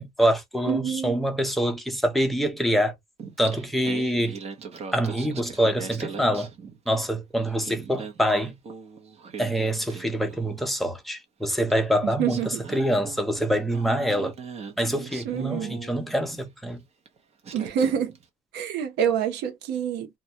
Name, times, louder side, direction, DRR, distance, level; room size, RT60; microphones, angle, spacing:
voice 1, 0.0-2.9 3.4-4.4 4.9-6.5 6.9-8.5 9.4-14.3 14.8-16.8, equal, ahead, 0.6 m, -25 dB
voice 2, 0.7-1.2 12.0-12.6 15.2-15.8 17.5-18.1 18.5-20.1, right 8 dB, 80° right, 0.7 m, -27 dB
Singing, 3.2-7.1 7.5-10.7 11.7-11.8 12.3-16.5 17.1-17.2 17.4-18.2, right 5 dB, 40° right, 0.8 m, -40 dB
2.3 x 2.1 x 2.7 m
cardioid pair, 110°, 17 cm